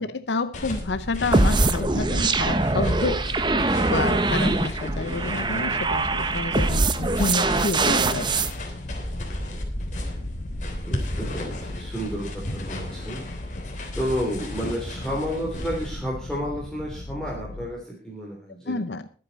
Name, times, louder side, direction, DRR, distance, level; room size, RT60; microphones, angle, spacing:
voice 1, 0.0-3.5 3.8-8.5 18.7-19.1, left 3 dB, 90° left, 12 dB, 0.8 m, -29 dB
sound 1, 0.5-15.9, left 1 dB, 45° left, 3.2 m, -35 dB
sound 2, 0.7-17.7, left 1 dB, 60° left, 0.9 m, -38 dB
sound 3, 1.3-8.5, right 2 dB, 25° right, 0.9 m, -23 dB
voice 2, 10.8-13.2 14.0-18.8, equal, 5° left, -3 dB, 3.1 m, -31 dB
22.0 x 8.7 x 4.1 m, 0.37 s
head